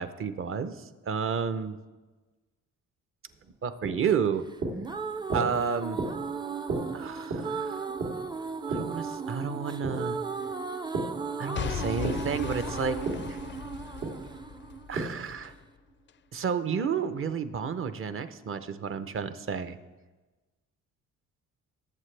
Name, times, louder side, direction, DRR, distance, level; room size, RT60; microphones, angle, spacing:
voice 1, 0.0-1.8 3.6-4.4 5.3-6.0 6.9-7.9 8.7-10.2 11.4-13.0 13.3-13.4 14.9-15.5 16.3-19.8, right 6 dB, 45° right, 11 dB, 0.8 m, -31 dB
sound 1, 3.3-11.2 11.5-15.4, right 3 dB, 80° right, 3.2 m, -36 dB
sound 2, 4.5-15.5, right 5 dB, 15° right, 0.5 m, -36 dB
Boom / Shatter / Crushing, 11.5-15.6 16.1-16.2, left 10 dB, 40° left, 0.4 m, -38 dB
19.5 x 7.6 x 3.4 m, 1.2 s
cardioid pair, 90°, 30 cm